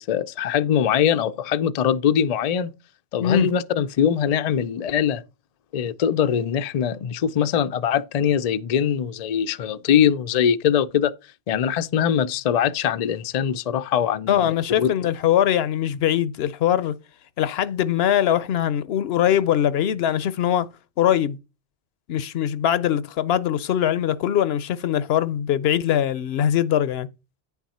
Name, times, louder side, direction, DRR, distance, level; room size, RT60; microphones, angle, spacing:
voice 1, 0.0-2.7 3.1-5.2 5.7-11.1 11.5-14.9, left 8 dB, 55° left, 0.4 m, -22 dB
voice 2, 14.3-16.9 17.4-20.7 21.0-21.4 22.1-27.1, left 10 dB, 70° left, 0.8 m, -22 dB
9.4 x 6.0 x 4.2 m
omnidirectional pair, 1.1 m